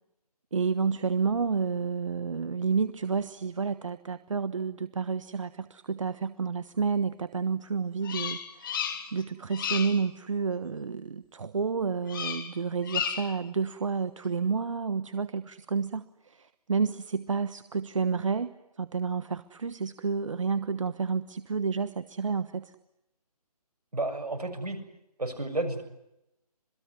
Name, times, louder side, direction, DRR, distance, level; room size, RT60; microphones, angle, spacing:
voice 1, 0.5-18.5 18.8-22.7, right 5 dB, 50° right, 13 dB, 1.3 m, -30 dB
Bird vocalization bird call bird song, 8.0-9.2 9.5-10.0 12.1-12.5 12.8-13.4, left 7 dB, 35° left, 3.1 m, -33 dB
voice 2, 23.9-24.8 25.2-25.8, right 2 dB, 75° right, 7 dB, 6.9 m, -31 dB
27.0 x 21.0 x 9.4 m, 0.86 s
figure-of-eight pair, 150°, 20 cm